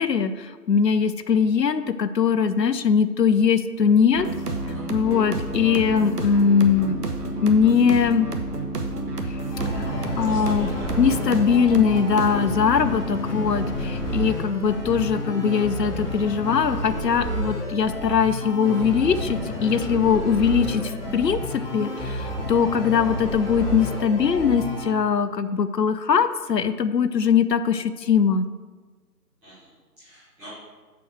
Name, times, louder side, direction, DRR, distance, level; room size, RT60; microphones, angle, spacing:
voice 1, 0.0-4.3 4.9-7.0 7.4-8.3 9.3-9.4 9.7-10.7 11.0-28.5, left 6 dB, 85° left, 12 dB, 0.7 m, -21 dB
sound 1, 4.1-12.4, right 3 dB, 75° right, 1.2 m, -31 dB
sound 2, 4.2-14.2, right 1 dB, 70° left, 2.1 m, -34 dB
voice 2, 4.4-4.9 10.2-10.9 29.4-30.5, right 1 dB, ahead, -18 dB, 1.3 m, -47 dB
sound 3, 9.5-24.9, equal, 35° left, 2.0 m, -30 dB
6.9 x 4.6 x 6.3 m, 1.4 s
figure-of-eight pair, 160°, 48 cm